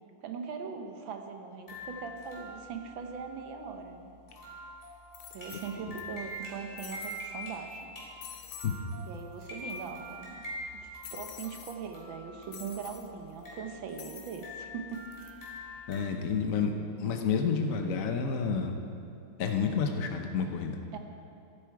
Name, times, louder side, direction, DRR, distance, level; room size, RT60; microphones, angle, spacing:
voice 1, 0.2-4.1 5.3-7.8 9.1-10.3 10.7-15.0 15.6-15.9 20.9-21.0, right 6 dB, 65° right, 5 dB, 1.7 m, -40 dB
sound 1, 1.7-16.0, left 1 dB, 25° left, 3.4 m, -45 dB
sound 2, 4.3-4.4 5.1-6.0 6.3-6.4 6.8-7.3 7.7-7.8 8.2-8.8 9.1-9.2 9.4-10.1 11.0-11.8 12.5-13.1 14.0-14.5 14.9-15.3, left 8 dB, 80° left, 1.7 m, -47 dB
voice 2, 15.9-16.7 17.0-18.8 19.4-20.8, left 6 dB, 65° left, 4 dB, 0.8 m, -29 dB
13.0 x 12.0 x 4.7 m, 2.5 s
omnidirectional pair, 2.4 m